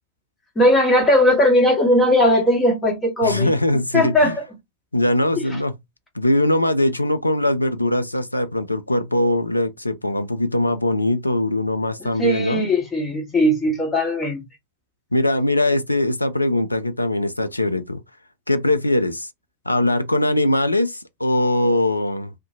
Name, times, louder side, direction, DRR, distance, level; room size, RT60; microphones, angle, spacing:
voice 1, 0.5-3.5 3.9-4.4 12.0-14.4, left 1 dB, 15° left, 1.2 m, -18 dB
voice 2, 3.2-4.3 4.9-5.8 6.1-12.7 15.1-18.0 18.5-19.3 19.7-22.3, left 1 dB, 85° left, 0.3 m, -21 dB
2.5 x 2.1 x 2.7 m
figure-of-eight pair, 90°, 0 cm